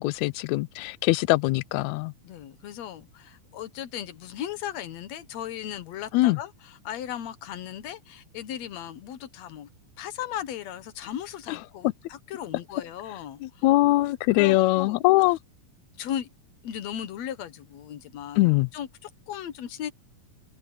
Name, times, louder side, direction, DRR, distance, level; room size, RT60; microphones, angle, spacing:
voice 1, 0.0-2.1 6.1-6.4 11.5-11.6 13.4-15.4 18.4-18.7, left 19 dB, 85° left, 1.6 m, -22 dB
voice 2, 2.2-9.7 10.0-13.6 14.3-15.0 16.0-16.3 16.6-18.4 18.7-19.9, left 10 dB, 65° left, 2.2 m, -37 dB
omnidirectional pair, 3.8 m